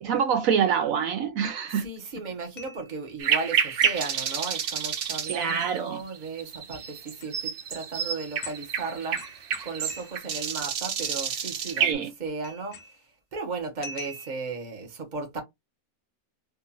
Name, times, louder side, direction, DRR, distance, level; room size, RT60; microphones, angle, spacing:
voice 1, 0.0-1.8 5.3-6.0 11.8-12.1, right 7 dB, 70° right, 1.0 m, -26 dB
voice 2, 1.7-13.0 13.3-15.4, right 4 dB, 35° right, 1.1 m, -36 dB
sound 1, 2.6-3.0 3.8-4.1 5.4-5.8 7.1-7.3 8.0-8.1 8.4-8.7 9.2-10.7 11.0-11.3 11.7-12.2 12.4-13.1 13.8-14.6, left 2 dB, 55° left, 1.0 m, -44 dB
sound 2, 3.2-11.9, right 7 dB, 55° right, 0.6 m, -29 dB
3.7 x 2.5 x 2.8 m
omnidirectional pair, 1.5 m